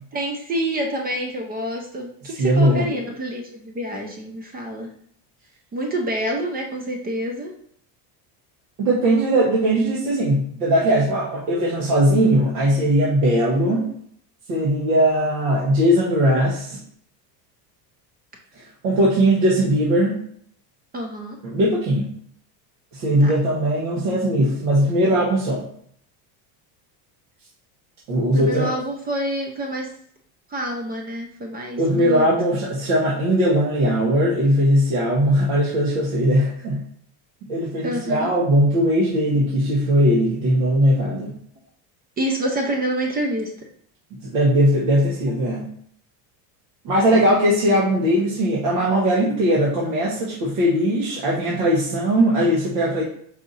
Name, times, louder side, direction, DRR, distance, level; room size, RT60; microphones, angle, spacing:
voice 1, 0.1-4.9 5.7-7.5 20.9-21.4 23.2-23.3 28.3-29.9 30.5-32.3 37.8-38.3 42.2-43.7, right 1 dB, 20° right, 2 dB, 0.4 m, -27 dB
voice 2, 2.3-2.9 8.8-13.9 14.5-16.8 18.6-20.2 21.4-22.1 22.9-25.6 28.1-28.7 31.8-36.8 37.5-41.4 44.2-45.7 46.8-53.0, equal, 85° right, -5 dB, 1.4 m, -19 dB
4.8 x 2.7 x 4.0 m, 0.63 s
cardioid pair, 140°, 47 cm